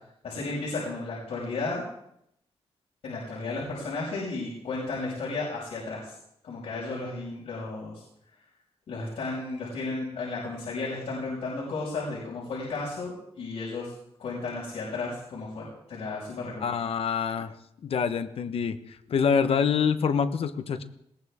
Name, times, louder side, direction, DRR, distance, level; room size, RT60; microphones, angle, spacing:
voice 1, 0.2-1.8 3.0-6.1 6.4-8.0 8.9-13.9 14.2-16.7, left 3 dB, 85° left, -6 dB, 5.7 m, -33 dB
voice 2, 16.6-17.5 17.8-18.8 19.1-20.8, left 6 dB, 65° left, 10 dB, 1.1 m, -26 dB
21.0 x 18.0 x 3.6 m, 0.77 s
wide cardioid pair, 130°, 10 cm